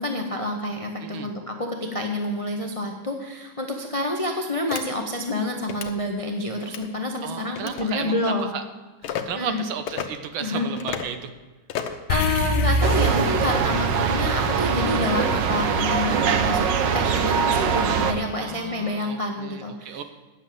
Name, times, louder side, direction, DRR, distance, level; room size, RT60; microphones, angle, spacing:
voice 1, 0.0-8.6 9.3-9.6 10.4-10.7 12.1-16.7 16.9-20.0, left 2 dB, 50° left, 2 dB, 0.4 m, -28 dB
sound 1, 4.7-4.8 5.6-5.9 6.6-6.9 7.5-7.9 9.0-9.2 9.9-10.1 10.8-11.1 11.7-12.0, left 9 dB, 90° left, 1.7 m, -31 dB
voice 2, 7.2-8.6 9.0-11.3 18.4-20.0, right 7 dB, 85° right, 8 dB, 1.7 m, -34 dB
sound 2, 12.1-16.6, left 2 dB, 70° left, 1.4 m, -27 dB
sound 3, 12.8-18.1, right 7 dB, 70° right, 1.4 m, -22 dB
10.0 x 7.2 x 7.5 m, 1.2 s
omnidirectional pair, 2.2 m